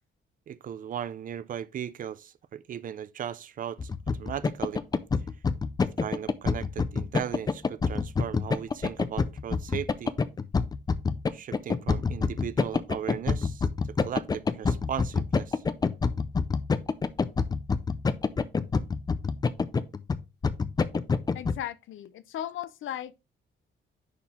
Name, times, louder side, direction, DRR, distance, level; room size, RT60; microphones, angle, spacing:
voice 1, 0.5-3.9 4.2-4.8 6.0-10.1 11.3-15.6, right 9 dB, 45° right, 0.5 m, -37 dB
sound 1, 3.8-21.6, left 5 dB, 20° left, 0.4 m, -27 dB
voice 2, 21.3-23.2, left 11 dB, 80° left, 0.6 m, -36 dB
10.0 x 4.4 x 3.5 m
wide cardioid pair, 180°, 20 cm